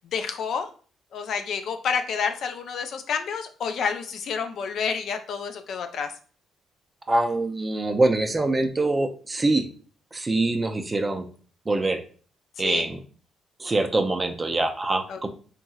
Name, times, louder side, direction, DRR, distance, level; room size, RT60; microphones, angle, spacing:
voice 1, 0.1-0.7 1.1-6.1 12.6-12.9 15.1-15.3, left 6 dB, 70° left, 7 dB, 0.4 m, -29 dB
voice 2, 7.1-9.7 10.1-11.3 11.7-12.0 12.6-13.0 13.6-15.3, right 2 dB, 25° right, 6 dB, 0.4 m, -24 dB
2.9 x 2.7 x 2.3 m, 0.40 s
cardioid pair, 90°, 0 cm